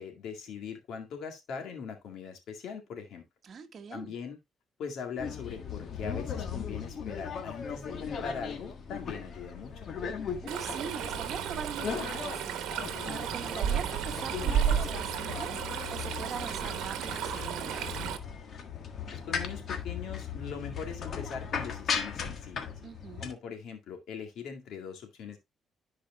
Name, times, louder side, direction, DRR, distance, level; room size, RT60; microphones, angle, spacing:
voice 1, 0.0-3.2 3.9-4.4 4.8-9.9 19.1-22.7 23.2-25.4, left 6 dB, 75° left, 2.0 m, -41 dB
voice 2, 3.4-4.1 10.4-12.7 13.0-17.9 22.8-23.3, right 6 dB, 50° right, 1.1 m, -42 dB
sound 1, 5.2-23.3, left 6 dB, 60° left, 1.4 m, -38 dB
Stream, 10.5-18.2, right 9 dB, 90° right, 1.0 m, -33 dB
13.5 x 4.8 x 2.2 m
cardioid pair, 90°, 0 cm